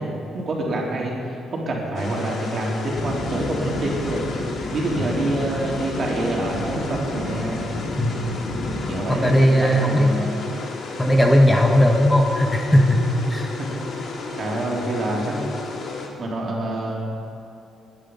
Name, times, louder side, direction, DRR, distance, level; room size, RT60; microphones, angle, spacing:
voice 1, 0.0-4.3 4.7-7.6 8.9-10.5 13.6-14.0 14.4-15.7 16.2-17.0, right 1 dB, 50° right, -3 dB, 3.8 m, -27 dB
sound 1, 1.9-16.1, left 4 dB, 60° left, 2.3 m, -33 dB
sound 2, 2.9-9.0, left 1 dB, 80° left, 3.2 m, -31 dB
voice 2, 9.1-10.1 11.0-13.0 13.3-13.5, equal, 10° left, 2 dB, 1.4 m, -17 dB
20.5 x 10.5 x 5.6 m, 2.7 s
cardioid pair, 90°, 0 cm